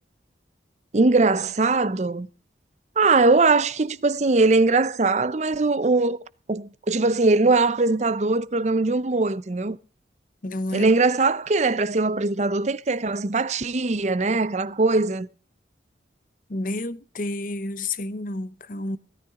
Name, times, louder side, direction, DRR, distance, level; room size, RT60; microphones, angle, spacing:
voice 1, 0.9-2.3 3.0-6.2 6.5-9.8 10.7-15.3, right 3 dB, 40° right, 0.6 m, -21 dB
voice 2, 10.4-10.9 16.5-19.0, left 2 dB, 50° left, 0.8 m, -30 dB
17.0 x 13.0 x 3.7 m
head